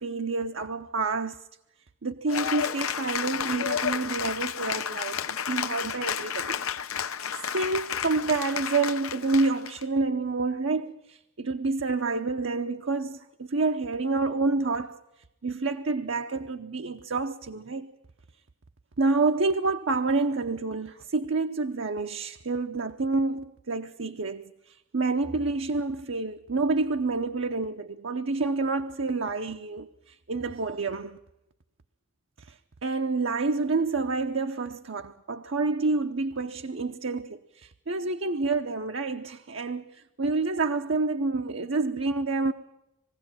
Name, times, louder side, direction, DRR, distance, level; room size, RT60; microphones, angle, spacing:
voice 1, 0.0-1.4 2.0-6.6 7.5-15.0 15.4-17.9 19.0-31.2 32.5-32.6 32.8-42.5, right 3 dB, 60° right, 0.8 m, -28 dB
Cheering / Applause, 2.3-9.8, left 8 dB, 85° left, 0.9 m, -31 dB
21.5 x 16.0 x 8.9 m
head